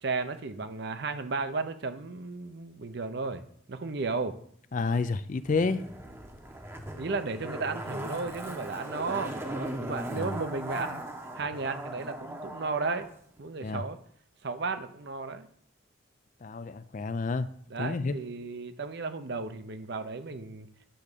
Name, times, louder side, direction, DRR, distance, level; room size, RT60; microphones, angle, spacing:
voice 1, 0.0-3.4 3.7-4.3 7.0-11.0 11.3-13.1 13.4-14.0 14.4-15.5 17.7-20.7, right 4 dB, 60° right, 9 dB, 0.7 m, -34 dB
voice 2, 4.7-5.9 10.1-10.4 13.6-13.8 16.4-17.5 17.8-18.1, left 4 dB, 40° left, 13 dB, 0.4 m, -30 dB
Zipper (clothing), 5.4-13.1 13.4-13.5, right 1 dB, 15° right, 0.9 m, -39 dB
10.0 x 3.6 x 6.7 m, 0.63 s
head